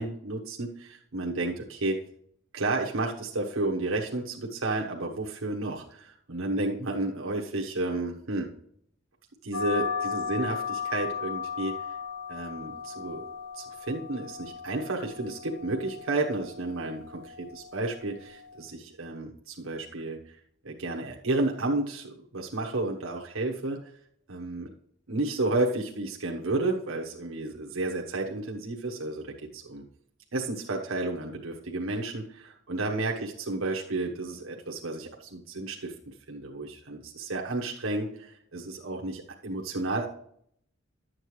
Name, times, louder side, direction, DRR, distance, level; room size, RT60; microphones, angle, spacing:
voice 1, 0.0-2.0 2.5-8.5 9.4-11.7 12.3-20.4 20.6-23.9 24.3-24.7 25.1-29.8 30.3-35.9 36.3-40.1, right 2 dB, 85° right, 0 dB, 1.1 m, -32 dB
sound 1, 9.5-18.6, left 6 dB, 80° left, 2.2 m, -36 dB
11.5 x 7.7 x 3.2 m, 0.67 s
head